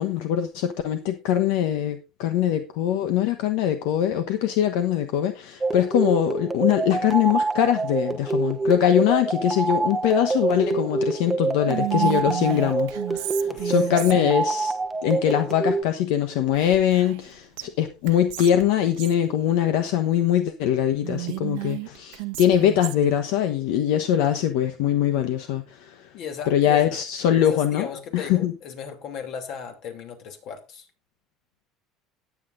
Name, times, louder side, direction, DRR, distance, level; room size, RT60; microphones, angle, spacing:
voice 1, 0.0-14.7 15.0-26.1 26.5-27.9 28.1-28.5, left 10 dB, 80° left, 1.1 m, -22 dB
sound 1, 5.6-15.8, right 3 dB, 10° right, 0.8 m, -26 dB
Whispering, 11.7-14.5 16.5-17.3 17.6-17.7 18.1-19.2 21.0-23.2, right 21 dB, 85° right, 1.0 m, -32 dB
voice 2, 13.4-13.8 26.1-26.9 27.3-30.9, left 7 dB, 55° left, 2.8 m, -36 dB
19.0 x 8.3 x 2.6 m
cardioid pair, 140°, 0 cm